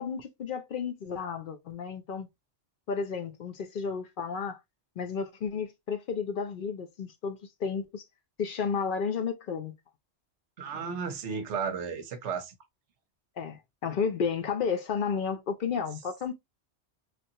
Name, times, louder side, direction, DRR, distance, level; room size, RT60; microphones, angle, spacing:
voice 1, 0.0-2.3 2.9-4.6 5.0-8.0 8.4-9.7 13.4-16.3, left 6 dB, 55° left, 0.7 m, -32 dB
voice 2, 10.6-12.5, right 6 dB, 85° right, 1.0 m, -34 dB
3.2 x 2.5 x 2.7 m
omnidirectional pair, 1.2 m